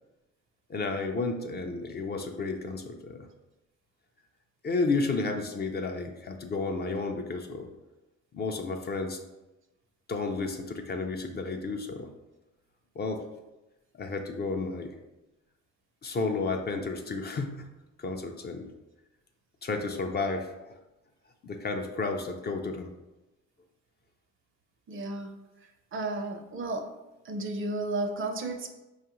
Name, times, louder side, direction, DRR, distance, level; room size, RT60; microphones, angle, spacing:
voice 1, 0.7-3.3 4.6-7.7 8.3-9.2 10.1-12.1 13.0-13.2 14.0-15.0 16.0-17.7 18.0-18.7 19.6-20.8 21.4-22.9, left 3 dB, 35° left, 4 dB, 0.4 m, -32 dB
voice 2, 24.9-25.3 25.9-26.9 27.2-28.7, right 2 dB, 45° right, 5 dB, 0.5 m, -33 dB
4.7 x 2.4 x 2.9 m, 1.0 s
cardioid pair, 90°, 30 cm